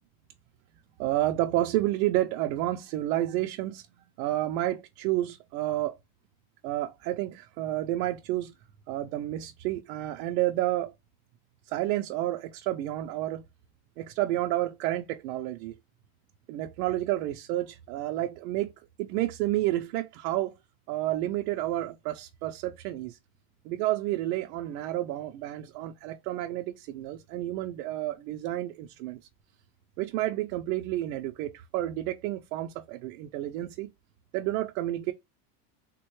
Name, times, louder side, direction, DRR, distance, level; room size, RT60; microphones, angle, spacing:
voice 1, 1.0-3.9 4.2-6.0 6.6-8.5 8.9-10.9 11.6-13.4 14.0-15.7 16.5-20.5 20.9-23.2 23.6-29.2 30.0-33.9 34.3-35.1, right 15 dB, 80° right, 0.6 m, -30 dB
3.5 x 2.2 x 2.9 m
cardioid pair, 175°, 45 cm